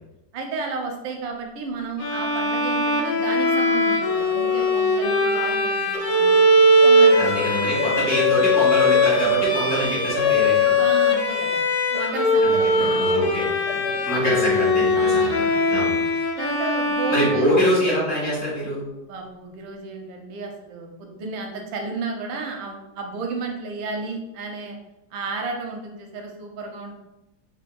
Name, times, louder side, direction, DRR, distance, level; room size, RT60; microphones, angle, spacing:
voice 1, 0.3-6.4 6.8-7.9 10.8-11.6 11.9-13.9 14.9-15.6 16.4-17.5 19.0-24.8 25.1-27.0, right 4 dB, 85° right, 2 dB, 1.4 m, -33 dB
Bowed string instrument, 2.0-18.1, left 1 dB, 85° left, 0.7 m, -20 dB
sound 1, 4.0-15.7, left 2 dB, 25° left, 0.8 m, -36 dB
voice 2, 7.2-10.8 12.4-15.9 17.1-18.9, equal, 40° left, -9 dB, 1.8 m, -25 dB
5.2 x 2.6 x 2.2 m, 0.95 s
omnidirectional pair, 2.1 m